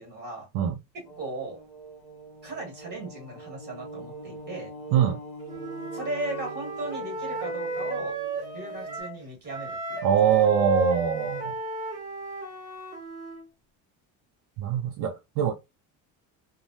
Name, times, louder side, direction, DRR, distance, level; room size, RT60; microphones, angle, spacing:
voice 1, 0.0-0.5 0.9-1.6 2.4-4.7 5.9-8.2 8.5-10.2, right 2 dB, 25° right, 1.5 m, -37 dB
sound 1, 1.0-9.0, right 2 dB, 20° left, 0.7 m, -43 dB
Wind instrument woodwind instrument, 5.5-9.2 9.5-13.4, right 1 dB, 10° right, 0.9 m, -34 dB
voice 2, 10.0-11.5 14.6-15.5, right 8 dB, 65° right, 0.5 m, -23 dB
3.2 x 2.2 x 2.6 m
cardioid pair, 180°, 38 cm